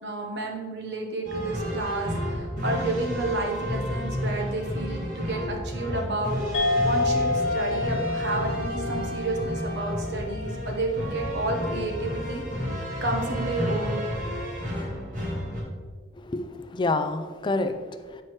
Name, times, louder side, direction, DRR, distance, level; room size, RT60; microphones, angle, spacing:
voice 1, 0.0-6.4 6.8-12.4 13.0-14.0, right 2 dB, 65° right, 1 dB, 1.1 m, -31 dB
sound 1, 1.2-15.6, equal, 45° right, 1.8 m, -31 dB
sound 2, 6.5-11.5, left 3 dB, 80° left, 0.9 m, -29 dB
voice 2, 16.1-18.2, left 2 dB, 25° left, 9 dB, 0.4 m, -28 dB
9.1 x 4.4 x 3.1 m, 1.5 s
head